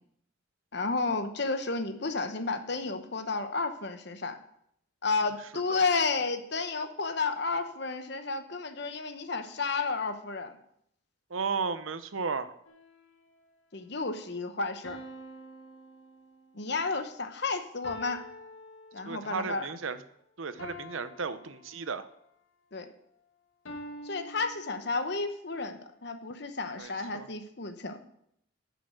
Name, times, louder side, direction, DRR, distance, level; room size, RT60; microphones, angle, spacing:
voice 1, 0.7-4.4 5.0-10.5 13.7-15.0 16.5-18.2 18.9-19.7 22.7-22.9 24.0-28.0, left 4 dB, 55° left, 8 dB, 1.0 m, -32 dB
voice 2, 11.3-12.5 19.1-20.0 20.4-22.1 26.8-27.3, right 5 dB, 80° right, 12 dB, 0.7 m, -34 dB
sound 1, 12.6-13.5 14.8-16.7 17.8-19.5 20.6-22.2 23.6-25.3, left 1 dB, 75° left, 1.5 m, -47 dB
10.5 x 6.9 x 6.3 m, 0.72 s
head